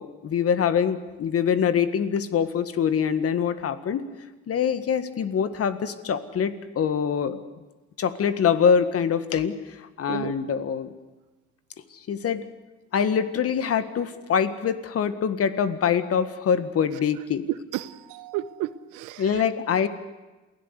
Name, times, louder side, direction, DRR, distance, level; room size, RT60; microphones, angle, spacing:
voice 1, 0.0-4.0 4.5-7.4 8.0-10.9 12.1-12.4 12.9-17.4 19.2-19.9, left 7 dB, 45° left, 12 dB, 1.8 m, -24 dB
voice 2, 17.7-19.5, right 15 dB, 70° right, 15 dB, 1.1 m, -33 dB
28.0 x 16.5 x 8.2 m, 1.2 s
hypercardioid pair, 70°, 32 cm